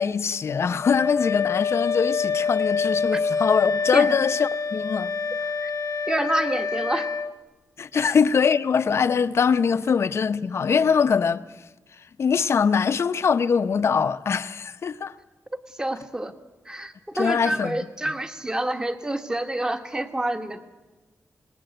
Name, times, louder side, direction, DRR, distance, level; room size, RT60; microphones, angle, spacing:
voice 1, 0.0-5.1 7.8-11.4 12.2-15.1 17.1-18.1, left 6 dB, 55° left, 0.8 m, -22 dB
Wind instrument woodwind instrument, 0.8-7.3, left 5 dB, 70° left, 1.1 m, -26 dB
voice 2, 6.1-7.1 8.0-8.1 15.7-16.3 16.6-20.6, right 1 dB, 15° right, 1.4 m, -28 dB
27.0 x 20.5 x 7.9 m
wide cardioid pair, 170°, 6 cm